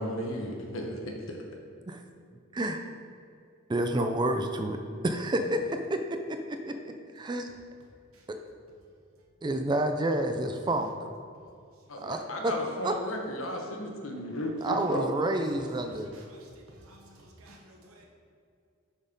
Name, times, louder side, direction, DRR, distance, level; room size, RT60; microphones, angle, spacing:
voice 1, 0.0-1.4 11.9-15.1, equal, 70° left, 2 dB, 1.0 m, -34 dB
voice 2, 3.7-4.8 5.0-6.0 6.3-7.5 8.3-8.4 9.4-10.9 12.0-12.5 12.8-13.0 14.6-16.1, right 1 dB, 20° right, 6 dB, 0.4 m, -29 dB
voice 3, 16.1-16.5 16.8-18.1, right 1 dB, 85° right, 0 dB, 1.1 m, -54 dB
7.0 x 4.2 x 5.3 m, 2.4 s
head